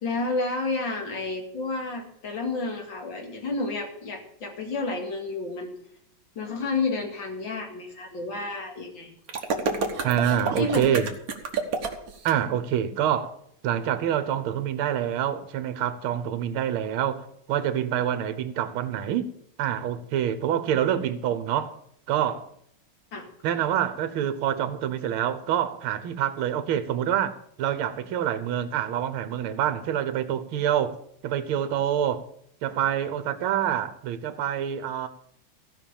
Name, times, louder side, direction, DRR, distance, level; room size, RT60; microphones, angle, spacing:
voice 1, 0.0-5.7 6.4-9.1 10.6-11.0 23.1-23.3, left 3 dB, 65° left, 2.9 m, -30 dB
sound 1, 9.3-12.3, right 4 dB, 45° right, 1.5 m, -29 dB
voice 2, 10.0-11.1 12.3-13.3 13.6-19.3 19.6-21.7 22.1-22.5 23.4-31.0 31.2-32.2 32.6-35.1, right 10 dB, 80° right, 1.8 m, -26 dB
16.0 x 5.8 x 7.1 m
omnidirectional pair, 2.3 m